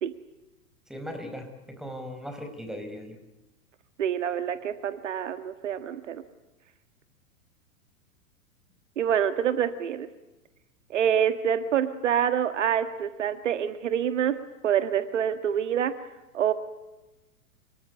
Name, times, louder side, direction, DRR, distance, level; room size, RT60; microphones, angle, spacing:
voice 1, 0.9-3.2, equal, ahead, 6 dB, 4.6 m, -38 dB
voice 2, 4.0-6.2 9.0-10.1 10.9-14.3 14.6-15.9 16.3-16.5, right 9 dB, 60° right, 11 dB, 1.6 m, -26 dB
26.0 x 23.5 x 9.5 m, 1.0 s
figure-of-eight pair, 100°, 42 cm